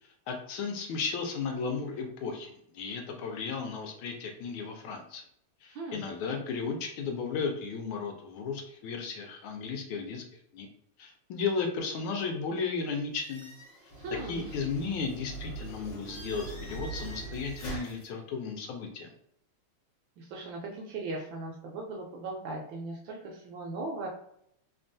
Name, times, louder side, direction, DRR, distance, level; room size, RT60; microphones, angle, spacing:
voice 1, 0.3-5.2 5.6-10.2 10.5-10.7 11.0-13.5 14.3-19.1, left 5 dB, 75° left, 3 dB, 1.3 m, -34 dB
voice 2, 5.7-6.0 14.0-14.6 20.2-24.1, right 2 dB, 75° right, 0 dB, 1.1 m, -38 dB
sound 1, 13.1-18.1, right 2 dB, 40° left, 1.4 m, -42 dB
3.4 x 2.2 x 2.6 m, 0.72 s
omnidirectional pair, 2.4 m